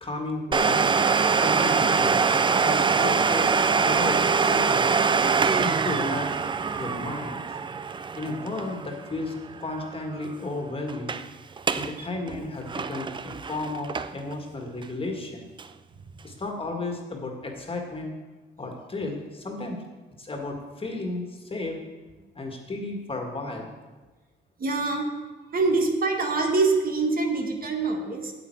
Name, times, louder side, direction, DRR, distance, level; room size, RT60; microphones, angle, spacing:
voice 1, 0.0-0.9 1.4-2.2 2.6-4.9 5.5-6.3 6.8-7.4 8.2-11.1 11.7-15.5 16.2-18.1 18.6-19.8 20.2-21.8 22.3-23.8, left 2 dB, 25° left, 1 dB, 1.8 m, -33 dB
Domestic sounds home sounds, 0.5-10.0 10.2-10.3 10.9-11.2 11.6-11.9 12.3-14.3 14.8-14.9 15.6-15.7, right 5 dB, 25° right, 0.4 m, -24 dB
voice 2, 24.6-25.1 25.5-28.3, right 3 dB, 45° right, 3 dB, 1.4 m, -24 dB
8.9 x 7.8 x 4.7 m, 1.3 s
cardioid pair, 90°, 20 cm